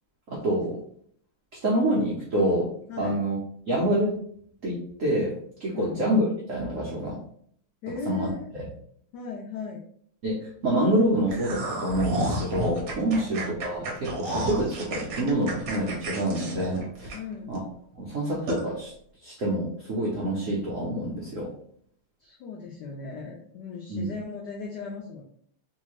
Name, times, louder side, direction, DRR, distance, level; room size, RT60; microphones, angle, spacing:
voice 1, 0.3-0.8 1.6-2.7 3.0-3.4 3.7-4.2 4.6-5.3 5.6-7.2 8.0-8.3 8.6-8.7 10.2-17.2 17.5-17.6 18.0-18.9 19.2-21.5 23.9-24.1, right 1 dB, 80° right, -4 dB, 0.7 m, -26 dB
voice 2, 7.8-8.5 9.1-9.8 13.1-13.3 17.1-17.6 22.2-25.2, left 5 dB, 90° left, 0 dB, 0.9 m, -37 dB
sound 1, 11.3-17.6 17.9-18.0 18.5-18.6, right 1 dB, 55° right, 1.2 m, -32 dB
3.2 x 2.7 x 3.1 m, 0.62 s
omnidirectional pair, 2.4 m